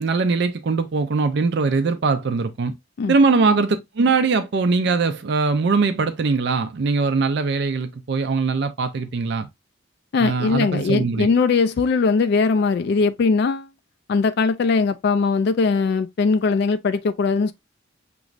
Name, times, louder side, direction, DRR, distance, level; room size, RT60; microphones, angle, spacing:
voice 1, 0.0-2.7 3.1-9.5 10.2-11.3, right 4 dB, 55° right, 0.4 m, -21 dB
voice 2, 10.1-13.7 14.1-17.5, left 4 dB, 55° left, 0.3 m, -20 dB
6.2 x 3.0 x 2.4 m
head